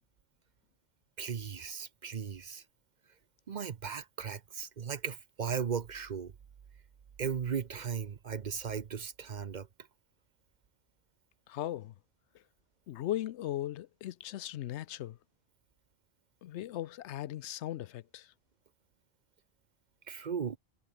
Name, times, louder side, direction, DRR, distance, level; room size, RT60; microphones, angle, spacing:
voice 1, 1.2-2.6 3.5-6.3 7.2-9.7 20.1-20.6, right 6 dB, 45° right, 0.8 m, -37 dB
voice 2, 11.5-11.9 12.9-15.2 16.4-18.3, left 13 dB, 85° left, 0.9 m, -38 dB
omnidirectional pair, 1.1 m